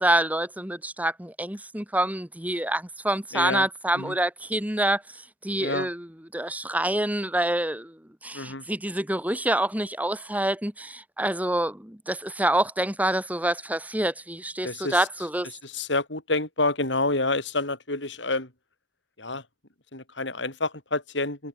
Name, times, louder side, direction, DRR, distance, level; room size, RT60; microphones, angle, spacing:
voice 1, 0.0-5.0 5.4-6.1 6.3-8.0 8.2-15.5, right 1 dB, 10° right, 4.0 m, -26 dB
voice 2, 3.3-3.7 3.9-4.2 5.6-5.9 8.3-8.7 14.6-15.1 15.6-18.5 19.2-19.4 19.9-21.5, left 2 dB, 70° left, 5.7 m, -28 dB
head